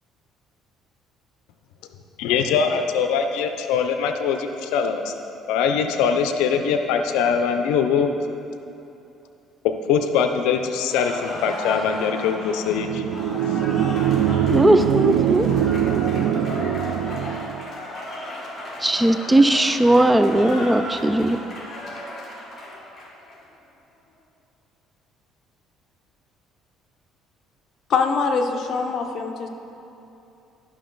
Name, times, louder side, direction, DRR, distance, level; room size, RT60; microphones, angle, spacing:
voice 1, 2.2-5.1 5.5-8.1 9.6-13.0, left 6 dB, 90° left, 7 dB, 0.5 m, -22 dB
Cheering / Applause, 10.8-23.4, left 1 dB, 35° left, 1.6 m, -35 dB
sound 1, 12.7-17.7, right 10 dB, 90° right, 0.4 m, -22 dB
voice 2, 14.5-15.5 18.8-21.4, right 1 dB, 10° right, 9 dB, 0.3 m, -18 dB
voice 3, 27.9-29.5, left 5 dB, 50° left, 3 dB, 0.8 m, -23 dB
11.5 x 6.2 x 3.9 m, 2.8 s
cardioid pair, 120°, 0 cm